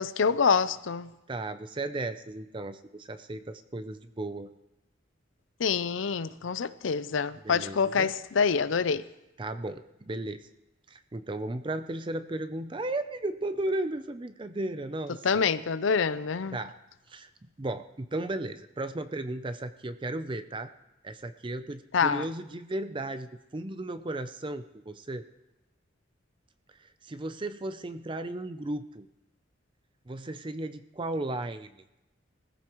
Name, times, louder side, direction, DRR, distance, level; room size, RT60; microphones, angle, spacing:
voice 1, 0.0-1.1 5.6-9.1 15.2-16.6 21.9-22.3, left 6 dB, 85° left, 0.5 m, -26 dB
voice 2, 1.3-4.5 7.4-8.1 9.4-10.5 10.9-15.4 16.5-16.8 17.1-17.3 17.6-20.7 21.0-25.3 26.8-29.1 30.1-31.8, right 2 dB, 25° right, 0.5 m, -35 dB
20.5 x 14.5 x 3.1 m
head